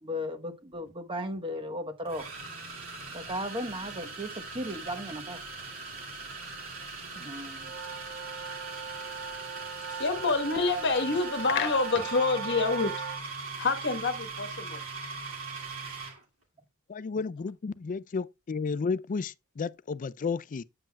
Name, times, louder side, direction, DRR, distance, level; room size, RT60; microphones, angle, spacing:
voice 1, 0.0-2.3 3.1-5.4 7.1-7.7, equal, 25° right, 1.0 m, -36 dB
sound 1, 0.7-0.9 2.1-16.2, right 3 dB, 70° right, 2.5 m, -40 dB
sound 2, 7.6-13.2, right 6 dB, 55° right, 0.9 m, -39 dB
voice 2, 10.0-12.9 13.6-14.8, left 3 dB, 55° left, 1.3 m, -27 dB
voice 3, 16.9-20.6, left 4 dB, 35° left, 0.4 m, -32 dB
8.8 x 7.7 x 2.3 m
head